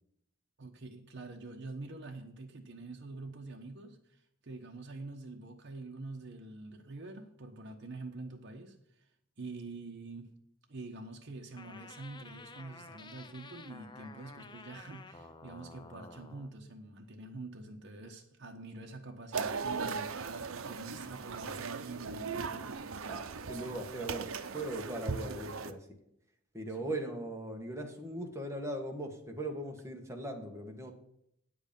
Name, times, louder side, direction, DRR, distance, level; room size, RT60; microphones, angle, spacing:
voice 1, 0.6-8.8 9.4-10.3 10.7-22.8 26.8-27.0, right 2 dB, 55° right, 2 dB, 1.1 m, -46 dB
sound 1, 11.6-16.5, left 3 dB, 20° left, 0.6 m, -51 dB
sound 2, 19.3-25.7, right 5 dB, 85° right, 0.7 m, -38 dB
voice 2, 23.5-25.9 26.5-30.9, right 1 dB, 15° right, 2 dB, 1.7 m, -39 dB
9.4 x 8.0 x 5.3 m, 0.74 s
head